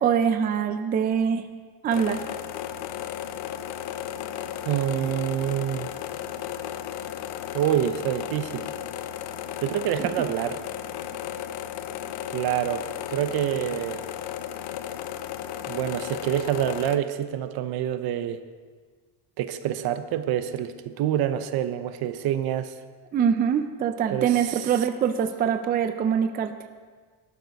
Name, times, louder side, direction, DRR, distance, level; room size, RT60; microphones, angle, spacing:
voice 1, 0.0-1.4 1.8-2.2 10.0-10.1 23.1-26.5, right 8 dB, 25° right, 8 dB, 0.4 m, -24 dB
sound 1, 1.9-17.0, left 10 dB, 75° left, 0.9 m, -34 dB
voice 2, 4.7-5.9 7.5-8.7 9.6-10.6 12.3-14.0 15.7-18.4 19.4-22.7 24.1-24.6, right 11 dB, 60° right, 10 dB, 0.9 m, -27 dB
19.0 x 12.5 x 4.2 m, 1.5 s
cardioid pair, 180°, 41 cm